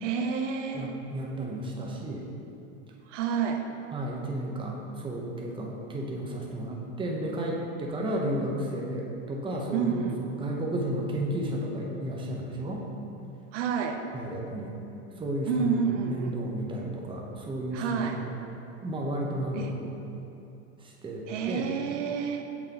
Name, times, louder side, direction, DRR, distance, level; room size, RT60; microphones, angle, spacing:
voice 1, 0.0-0.9 3.1-3.7 9.7-10.2 13.5-14.1 15.4-16.4 17.7-18.2 19.5-19.8 21.3-22.4, right 6 dB, 75° right, 5 dB, 0.7 m, -29 dB
voice 2, 0.7-2.2 3.9-12.8 14.1-14.8 15.2-18.3 18.8-19.9 21.0-21.7, right 1 dB, 15° right, -2 dB, 0.8 m, -33 dB
7.2 x 6.2 x 2.9 m, 2.8 s
supercardioid pair, 125°, 36 cm